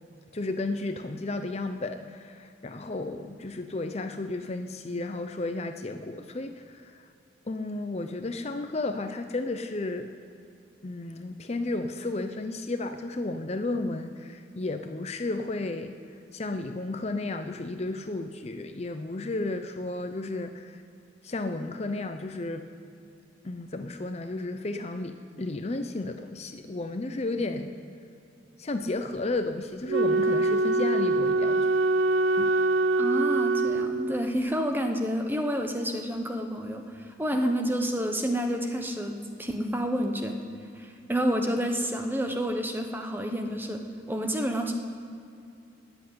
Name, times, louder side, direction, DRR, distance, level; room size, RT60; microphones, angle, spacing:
voice 1, 0.3-6.9 7.5-10.1 10.8-15.9 16.3-20.8 21.2-22.7 23.4-27.7 28.6-31.8 32.4-32.5, left 2 dB, 35° left, 7 dB, 0.6 m, -33 dB
Wind instrument woodwind instrument, 29.9-34.3, right 2 dB, 80° right, 0.6 m, -24 dB
voice 2, 33.0-40.4 40.8-43.8 44.1-44.7, equal, 10° right, 4 dB, 1.0 m, -29 dB
14.0 x 7.9 x 9.6 m, 2.6 s
head